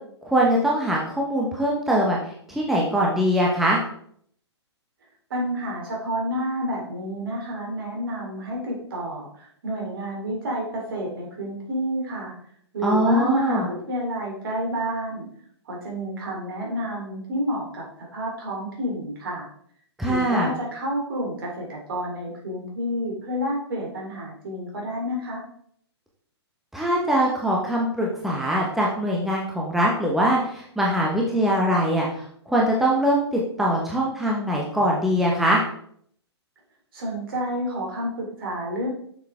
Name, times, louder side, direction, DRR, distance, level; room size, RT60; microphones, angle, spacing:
voice 1, 0.2-3.8 12.8-13.7 20.0-20.5 26.7-35.6, equal, ahead, -3 dB, 1.2 m, -22 dB
voice 2, 5.3-12.3 12.7-15.3 15.7-17.9 18.1-19.5 20.0-25.4 36.9-38.9, equal, 50° right, -2 dB, 3.7 m, -29 dB
7.6 x 7.0 x 3.6 m, 0.64 s
figure-of-eight pair, 120°, 15 cm